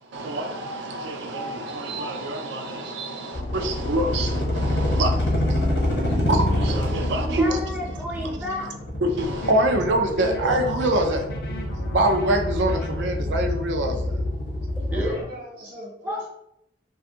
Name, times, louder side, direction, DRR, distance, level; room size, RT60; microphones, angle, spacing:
voice 1, 0.0-7.6 9.0-11.2 11.9-14.2, right 1 dB, 80° right, 4 dB, 0.4 m, -26 dB
sound 1, 3.3-15.1, left 1 dB, 70° left, 0.8 m, -26 dB
voice 2, 7.3-8.7 10.1-10.6 14.9-15.2 16.0-16.2, equal, 10° right, -2 dB, 0.5 m, -31 dB
sound 2, 9.2-13.0 15.0-15.2, left 2 dB, 50° left, 0.4 m, -39 dB
voice 3, 14.9-16.3, right 1 dB, 50° right, -4 dB, 0.7 m, -38 dB
2.5 x 2.3 x 2.6 m, 0.76 s
head